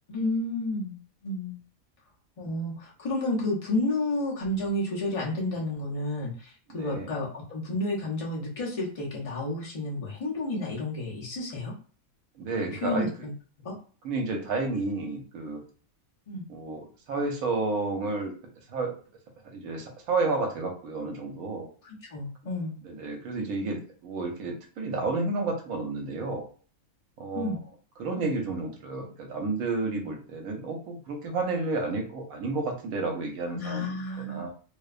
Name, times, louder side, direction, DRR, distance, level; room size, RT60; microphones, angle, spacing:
voice 1, 0.1-1.0 1.2-1.6 2.4-11.7 12.8-13.3 13.6-13.7 16.3-16.4 22.1-22.8 27.3-27.6 33.5-34.4, left 2 dB, 45° left, -3 dB, 0.5 m, -31 dB
voice 2, 6.7-7.1 12.4-13.1 14.0-15.6 16.5-18.3 18.7-18.9 19.4-21.7 22.8-26.5 27.2-27.6 28.0-34.5, right 3 dB, 80° right, 2 dB, 1.1 m, -31 dB
2.6 x 2.1 x 2.4 m, 0.41 s
omnidirectional pair, 1.5 m